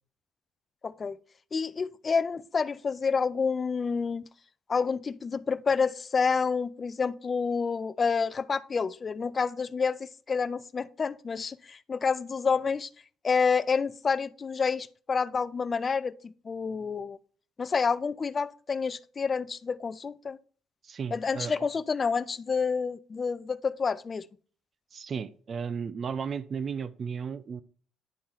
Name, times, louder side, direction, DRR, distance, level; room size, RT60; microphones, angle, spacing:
voice 1, 0.8-1.2 1.5-4.2 4.7-12.9 13.2-17.2 17.6-20.4 21.1-24.3, left 5 dB, 30° left, 0.4 m, -28 dB
voice 2, 20.8-21.7 24.9-27.6, right 6 dB, 40° right, 0.4 m, -34 dB
10.0 x 3.6 x 4.4 m
cardioid pair, 100°, 0 cm